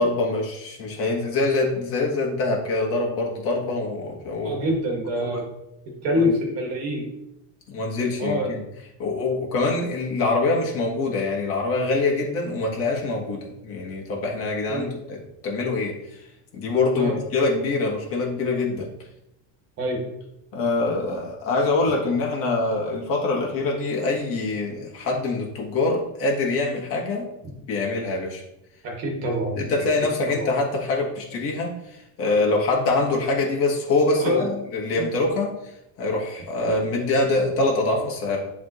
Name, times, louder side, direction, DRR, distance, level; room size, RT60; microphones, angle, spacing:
voice 1, 0.0-4.6 5.2-5.4 6.1-6.3 7.7-8.6 9.0-15.9 16.5-18.9 20.5-27.3 27.6-28.4 29.6-31.7 32.2-35.5 36.0-38.4, left 3 dB, 35° left, -2 dB, 1.6 m, -24 dB
voice 2, 4.4-5.5 6.0-7.1 8.2-8.5 14.7-14.9 17.0-17.2 19.8-20.0 28.8-29.7 30.3-30.5 34.2-34.5 34.9-35.1, equal, 40° right, 0 dB, 1.8 m, -25 dB
10.5 x 3.6 x 3.1 m, 0.85 s
cardioid pair, 175°, 37 cm